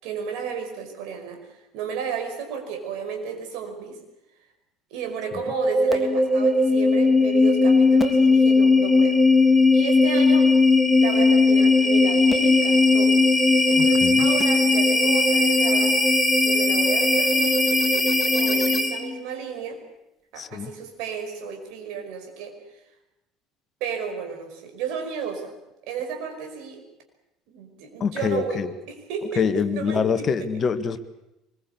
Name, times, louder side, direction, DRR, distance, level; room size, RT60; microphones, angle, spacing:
voice 1, 0.0-4.0 4.9-9.2 9.7-10.5 11.0-13.2 13.7-16.0 16.4-19.8 20.3-22.8 23.8-25.5 25.9-26.8 27.5-30.5, right 6 dB, 60° right, 4 dB, 5.3 m, -33 dB
sound 1, 5.2-19.2, left 3 dB, 5° left, 2.8 m, -18 dB
voice 2, 13.8-14.3 20.4-20.7 28.0-28.7 29.4-31.0, left 6 dB, 40° left, 11 dB, 1.7 m, -25 dB
24.0 x 21.5 x 8.3 m, 0.92 s
figure-of-eight pair, 60°, 0 cm